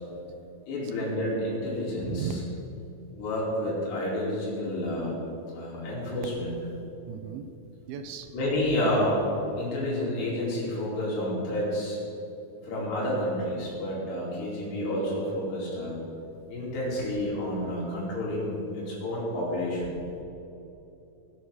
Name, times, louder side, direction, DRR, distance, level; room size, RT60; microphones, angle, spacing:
voice 1, 0.7-2.3 3.1-5.2 5.5-6.5 8.3-9.2 9.6-12.0 12.6-16.0 16.5-19.9, left 1 dB, 90° left, -6 dB, 5.0 m, -29 dB
voice 2, 7.1-7.5 7.9-8.4 16.5-16.8, right 8 dB, 80° right, 7 dB, 2.5 m, -37 dB
18.0 x 6.6 x 6.5 m, 2.9 s
omnidirectional pair, 4.7 m